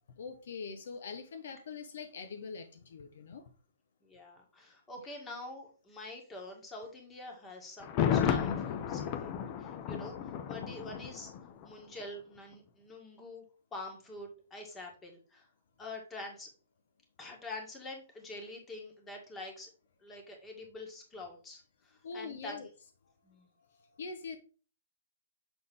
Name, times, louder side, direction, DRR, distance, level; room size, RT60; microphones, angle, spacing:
voice 1, 0.2-3.5 5.0-5.1 22.0-22.7 23.7-24.4, left 5 dB, 65° left, 7 dB, 0.8 m, -43 dB
voice 2, 4.0-9.3 9.6-11.3 11.6-13.4 13.7-15.5 15.8-16.5 17.2-19.7 20.0-22.7 23.2-23.5, left 2 dB, 15° left, 1 dB, 1.8 m, -46 dB
Thunder, 7.8-11.7 12.0-12.1, left 8 dB, 35° left, 0.7 m, -33 dB
6.9 x 3.9 x 3.5 m, 0.37 s
hypercardioid pair, 130°, 0 cm